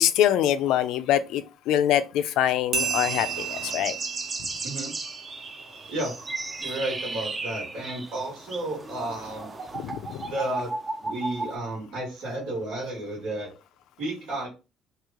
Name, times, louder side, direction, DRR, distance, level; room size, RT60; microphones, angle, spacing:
voice 1, 0.0-4.0 9.7-10.3, left 11 dB, 75° left, 0.4 m, -24 dB
sound 1, 2.7-11.5, right 3 dB, 20° right, 0.4 m, -35 dB
sound 2, 2.7-5.8, right 6 dB, 45° right, 0.8 m, -33 dB
voice 2, 6.6-9.5 10.3-10.7 11.0-13.5 14.0-14.5, right 1 dB, 85° right, 1.7 m, -32 dB
3.0 x 2.8 x 3.6 m
cardioid pair, 165°, 0 cm